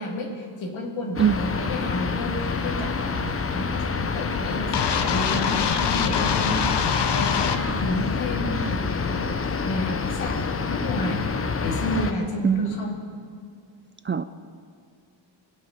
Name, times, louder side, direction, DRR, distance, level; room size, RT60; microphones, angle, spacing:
voice 1, 0.0-11.3 11.6-13.1, left 1 dB, 80° left, 1 dB, 2.7 m, -31 dB
sound 1, 1.1-12.1, left 5 dB, 30° left, 0.8 m, -27 dB
sound 2, 4.7-7.6, left 7 dB, 60° left, 1.0 m, -24 dB
voice 2, 12.4-12.8 14.1-14.2, right 8 dB, 30° right, 11 dB, 0.3 m, -21 dB
22.5 x 8.7 x 5.8 m, 2.3 s
cardioid pair, 125°, 46 cm